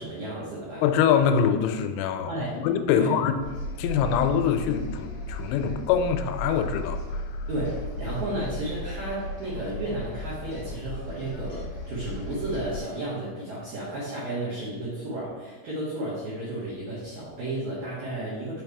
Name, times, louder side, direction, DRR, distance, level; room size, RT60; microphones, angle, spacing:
voice 1, 0.0-0.8 2.3-2.6 2.9-3.1 7.5-18.6, right 1 dB, 60° right, -9 dB, 2.0 m, -33 dB
voice 2, 0.8-3.4 3.8-7.3, left 8 dB, 85° left, 7 dB, 3.1 m, -24 dB
sound 1, 3.4-12.8, left 1 dB, 65° left, 2.6 m, -35 dB
6.1 x 5.3 x 4.7 m, 1.3 s
omnidirectional pair, 5.6 m